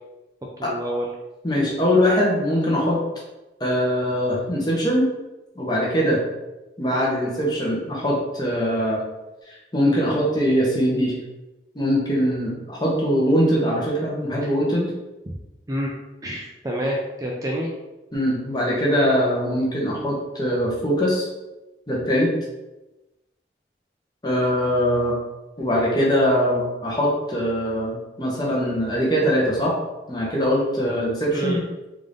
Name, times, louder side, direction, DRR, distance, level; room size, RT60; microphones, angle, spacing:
voice 1, 0.6-1.1 14.4-14.5 15.3-15.4 15.7-15.9 16.2-17.7 31.3-31.6, equal, 20° right, -2 dB, 0.3 m, -28 dB
voice 2, 1.4-3.0 3.6-5.1 5.6-6.2 6.8-9.0 9.5-11.2 11.7-14.9 18.1-21.3 21.9-22.3 24.2-25.1 25.6-29.7 30.1-31.6, equal, 25° left, -4 dB, 0.8 m, -22 dB
3.6 x 2.5 x 3.3 m, 1.0 s
head